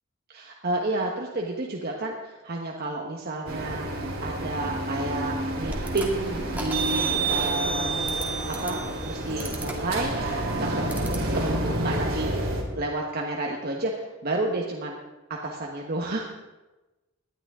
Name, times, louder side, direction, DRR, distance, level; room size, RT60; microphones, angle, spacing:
voice 1, 0.3-10.2 10.6-10.8 11.2-12.3 12.8-15.0 15.4-16.3, right 2 dB, 50° right, -1 dB, 1.2 m, -31 dB
sound 1, 3.5-12.6, right 2 dB, 70° right, 2.7 m, -29 dB
sound 2, 5.6-11.5, right 1 dB, 10° right, 1.6 m, -38 dB
18.5 x 11.0 x 3.7 m, 1.1 s
head